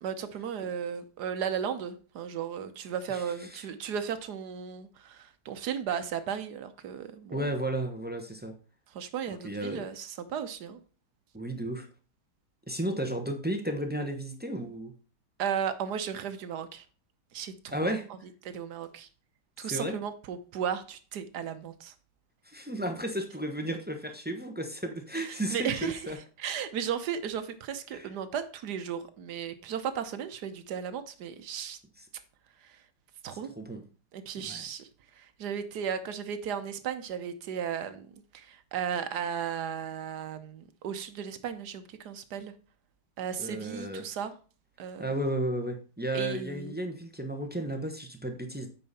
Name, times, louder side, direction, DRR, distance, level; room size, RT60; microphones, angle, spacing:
voice 1, 0.0-7.5 8.9-10.8 15.4-16.8 17.3-17.8 18.4-19.1 19.6-21.9 25.1-26.0 26.4-31.8 33.2-33.5 34.1-34.9 35.2-38.1 38.3-42.5 43.2-44.3 44.8-45.1 46.1-46.7, right 8 dB, 65° right, 11 dB, 1.4 m, -35 dB
voice 2, 7.3-8.5 9.3-9.9 11.3-11.9 12.7-14.9 17.7-18.1 19.6-20.0 22.5-26.2 27.9-28.1 33.4-33.8 34.4-34.6 43.4-44.1 45.0-48.7, right 1 dB, 10° right, 5 dB, 0.6 m, -33 dB
8.8 x 5.7 x 4.2 m, 0.37 s
omnidirectional pair, 2.0 m